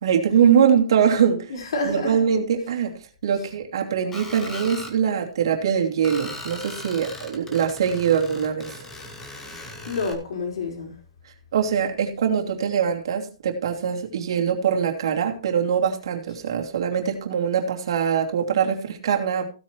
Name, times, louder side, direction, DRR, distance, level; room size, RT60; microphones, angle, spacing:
voice 1, 0.0-1.5 1.8-8.7 11.5-19.4, right 7 dB, 50° right, 2.7 m, -22 dB
voice 2, 1.5-2.1 9.6-10.9, left 3 dB, 55° left, 4.6 m, -29 dB
Screech, 4.1-4.9 6.0-10.1, left 2 dB, 10° left, 1.3 m, -38 dB
16.0 x 8.7 x 3.1 m
hypercardioid pair, 180°, 3 cm